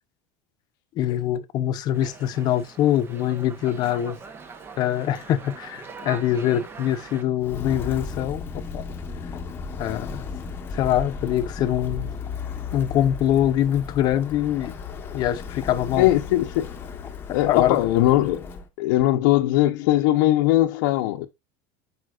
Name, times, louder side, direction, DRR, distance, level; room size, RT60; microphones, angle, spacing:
voice 1, 1.0-4.2 4.8-8.8 9.8-10.2 10.7-12.1 12.7-14.7 15.1-16.1 17.5-17.8, left 11 dB, 40° left, 0.7 m, -24 dB
Dog, 1.9-7.2, right 5 dB, 20° right, 0.9 m, -42 dB
Walk footsteps, 7.4-18.7, left 5 dB, 20° left, 1.0 m, -35 dB
voice 2, 16.0-16.7 17.3-18.5 18.8-21.3, left 15 dB, 75° left, 0.8 m, -20 dB
7.7 x 5.2 x 2.4 m
cardioid pair, 165°, 11 cm